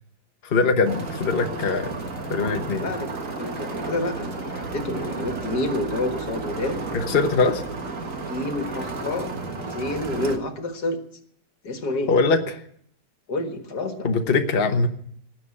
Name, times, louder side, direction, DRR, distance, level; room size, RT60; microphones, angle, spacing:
voice 1, 0.4-1.9 2.3-2.9 6.9-7.6 12.1-12.4 14.0-14.9, left 4 dB, 40° left, 5 dB, 1.1 m, -21 dB
sound 1, 0.8-10.4, right 3 dB, 50° right, 2.0 m, -32 dB
voice 2, 2.8-3.1 3.4-6.8 8.3-11.0 11.6-12.1 13.3-14.1, left 2 dB, 65° left, 6 dB, 2.2 m, -29 dB
19.0 x 7.6 x 9.8 m, 0.66 s
omnidirectional pair, 1.9 m